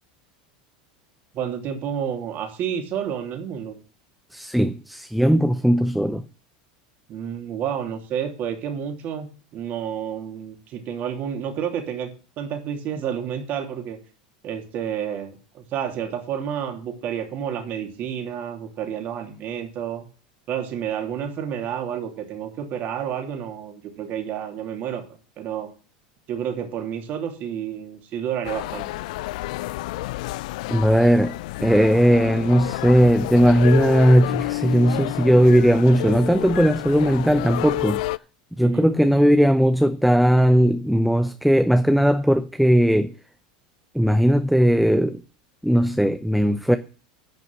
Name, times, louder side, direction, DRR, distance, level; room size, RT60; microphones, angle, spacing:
voice 1, 1.3-3.7 7.1-9.3 9.5-12.1 12.4-14.0 14.4-20.1 20.5-25.0 25.4-25.7 26.3-28.9 38.6-38.9, right 8 dB, 45° right, 3.0 m, -30 dB
voice 2, 4.3-6.2 30.7-38.0 38.6-43.1 43.9-45.2 45.6-46.8, equal, ahead, 0.7 m, -18 dB
sound 1, 28.4-38.2, left 18 dB, 70° left, 0.4 m, -30 dB
10.5 x 5.4 x 7.2 m
hypercardioid pair, 105°, 4 cm